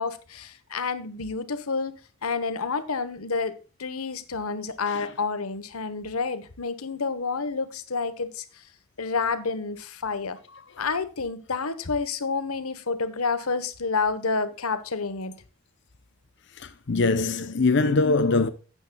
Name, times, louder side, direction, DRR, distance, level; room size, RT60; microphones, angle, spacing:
voice 1, 0.0-1.9 2.2-8.4 9.0-10.4 10.8-15.3, left 4 dB, 80° left, 1.1 m, -29 dB
voice 2, 16.6-18.5, left 3 dB, 50° left, 0.7 m, -22 dB
12.5 x 8.5 x 2.3 m
head